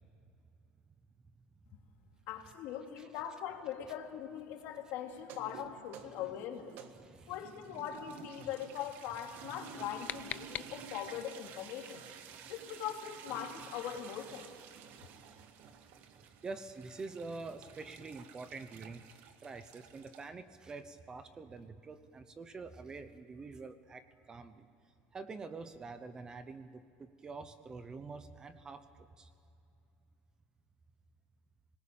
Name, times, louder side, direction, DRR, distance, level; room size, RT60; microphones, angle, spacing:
voice 1, 2.3-6.7 7.3-12.0 12.5-14.5, left 10 dB, 55° left, 3 dB, 2.7 m, -41 dB
sound 1, 5.2-20.3, right 7 dB, 50° right, 1.5 m, -52 dB
voice 2, 7.0-7.8 16.4-19.0 19.4-24.7 25.1-28.8 29.2-29.3, right 4 dB, 15° right, 11 dB, 0.8 m, -46 dB
sound 2, 9.6-11.3, left 12 dB, 35° left, 0.5 m, -44 dB
26.0 x 19.5 x 8.8 m, 2.7 s
cardioid pair, 170°, 4 cm